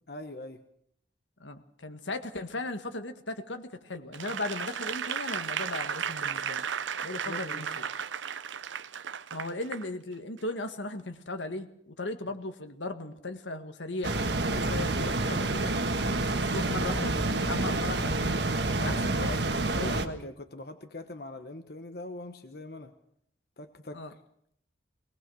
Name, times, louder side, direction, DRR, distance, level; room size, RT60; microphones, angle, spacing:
voice 1, 0.1-0.6 7.3-7.6 18.7-19.1 19.7-22.9 23.6-24.0, left 2 dB, 55° left, 7 dB, 1.2 m, -42 dB
voice 2, 1.4-6.6 7.0-7.9 9.3-15.8 16.4-18.3 18.7-20.2 23.9-24.1, left 2 dB, 85° left, 7 dB, 1.8 m, -37 dB
Applause / Crowd, 4.1-9.9 10.4-10.5, right 7 dB, 90° right, 0.7 m, -35 dB
sound 1, 14.0-20.1, right 2 dB, 70° right, 1.5 m, -28 dB
21.0 x 19.5 x 6.4 m, 0.72 s
head